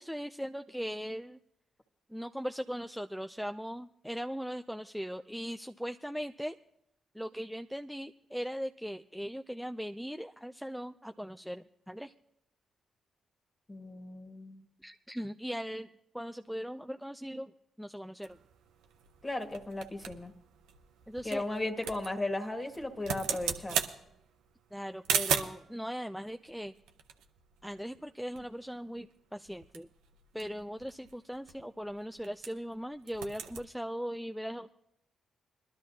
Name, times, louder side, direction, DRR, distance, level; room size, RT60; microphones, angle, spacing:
voice 1, 0.0-1.4 2.1-6.6 7.1-12.1 14.8-15.9 16.1-17.5 17.8-18.4 21.1-21.4 24.7-26.7 27.6-29.9 30.3-34.7, equal, ahead, 8 dB, 0.4 m, -39 dB
voice 2, 13.7-14.6 19.2-20.3 21.2-23.8, left 2 dB, 25° left, 5 dB, 1.7 m, -36 dB
sound 1, 18.2-25.7 26.5-28.1 28.3-28.5 28.7-29.0 29.4-32.7 33.0-33.7, right 8 dB, 85° right, 0.7 m, -38 dB
21.0 x 12.0 x 2.8 m, 0.80 s
supercardioid pair, 50°, 0 cm